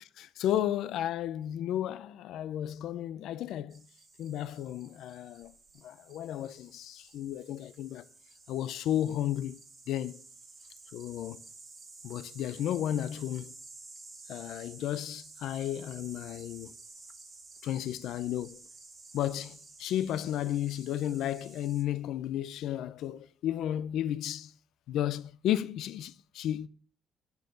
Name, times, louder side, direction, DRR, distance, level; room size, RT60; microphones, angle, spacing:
voice 1, 0.2-3.8 4.2-8.0 8.5-9.6 9.9-10.2 10.9-11.4 12.0-13.5 14.3-16.7 17.6-18.6 19.1-24.5 24.9-26.7, left 11 dB, 85° left, 0.5 m, -33 dB
sound 1, 3.7-21.8, right 3 dB, 40° right, 2.1 m, -52 dB
9.4 x 4.7 x 7.3 m
cardioid pair, 90°, 0 cm